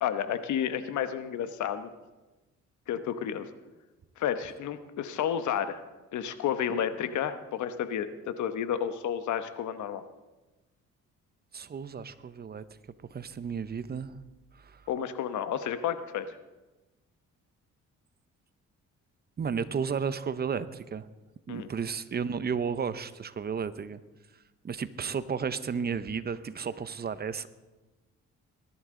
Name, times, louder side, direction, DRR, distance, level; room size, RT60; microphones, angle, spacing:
voice 1, 0.0-1.9 2.9-3.5 4.2-5.8 6.1-10.0 14.9-16.3 21.5-21.7, left 9 dB, 75° left, 11 dB, 1.0 m, -31 dB
voice 2, 11.5-12.6 13.1-14.1 14.6-14.8 19.4-21.1 21.5-24.0 24.6-27.5, right 6 dB, 30° right, 14 dB, 0.7 m, -33 dB
20.5 x 11.5 x 3.8 m, 1.1 s
cardioid pair, 90°, 30 cm